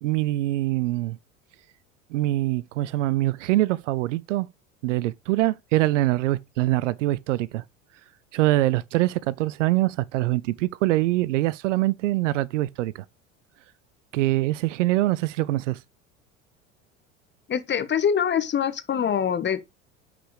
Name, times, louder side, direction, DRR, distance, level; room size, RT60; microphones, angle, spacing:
voice 1, 0.0-1.2 2.1-4.5 4.8-7.6 8.3-13.0 14.1-15.8, right 17 dB, 65° right, 0.6 m, -24 dB
voice 2, 17.5-19.6, left 8 dB, 25° left, 1.4 m, -24 dB
9.9 x 5.0 x 4.9 m
figure-of-eight pair, 75°, 40 cm